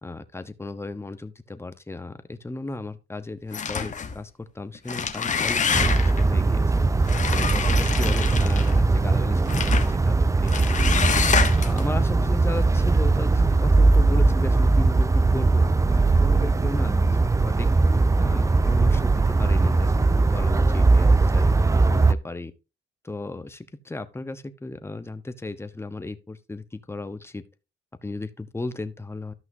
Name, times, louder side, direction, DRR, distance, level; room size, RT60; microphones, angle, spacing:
voice 1, 0.0-6.6 7.3-11.0 11.6-17.1 17.4-17.7 18.2-21.6 21.9-22.5 23.0-27.4 28.0-29.3, left 2 dB, 10° left, 1.0 m, -35 dB
sound 1, 3.5-4.2 4.7-6.2 7.1-8.8 9.5-9.9 10.5-11.8, left 6 dB, 40° left, 1.2 m, -26 dB
sound 2, 5.7-22.1, right 3 dB, 15° right, 0.4 m, -20 dB
13.5 x 5.8 x 2.7 m
cardioid pair, 90°, 20 cm